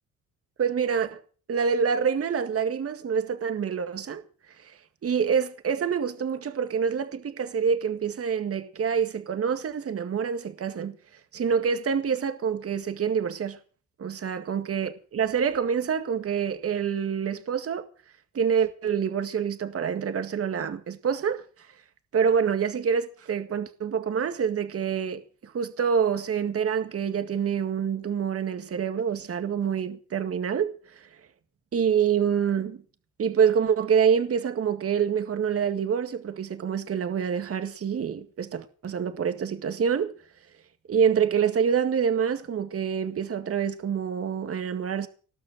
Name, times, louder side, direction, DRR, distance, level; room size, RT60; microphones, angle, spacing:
voice 1, 0.6-1.2 1.5-4.2 4.6-11.0 11.3-13.6 14.0-17.8 18.3-21.4 22.1-31.1 31.7-32.8 33.2-40.1 40.9-45.1, right 7 dB, 50° right, 2.0 m, -26 dB
19.0 x 6.5 x 9.0 m
cardioid pair, 90°, 30 cm